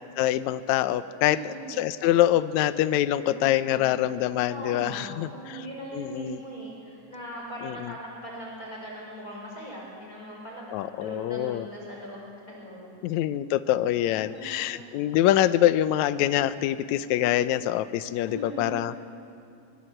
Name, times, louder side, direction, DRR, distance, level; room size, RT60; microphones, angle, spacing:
voice 1, 0.2-5.7 5.9-6.4 7.6-7.9 10.7-11.7 13.0-19.0, left 13 dB, 75° left, 13 dB, 2.0 m, -25 dB
voice 2, 1.2-1.7 3.2-3.9 4.5-13.0 14.0-14.9 18.3-18.9, right 1 dB, 25° left, -3 dB, 5.2 m, -40 dB
23.5 x 21.5 x 7.8 m, 2.6 s
omnidirectional pair, 3.5 m